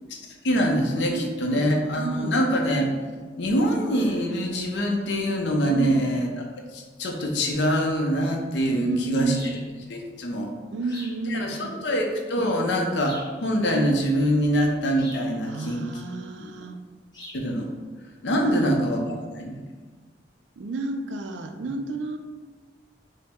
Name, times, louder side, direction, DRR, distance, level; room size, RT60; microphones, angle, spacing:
voice 1, 0.4-3.0 3.4-6.3 6.7-9.4 9.9-10.5 11.2-15.8 16.5-16.6 17.3-17.7 18.2-19.6, equal, 75° left, 2 dB, 0.7 m, -24 dB
voice 2, 1.1-2.4 5.7-6.0 8.7-9.5 10.7-11.9 15.5-16.8 18.4-19.3 20.6-22.2, right 3 dB, 80° right, 6 dB, 0.4 m, -31 dB
sound 1, 9.3-9.6 10.9-11.2 13.0-13.4 15.0-15.3 17.1-17.4, left 1 dB, 25° left, 1.0 m, -42 dB
5.3 x 2.1 x 3.5 m, 1.4 s
head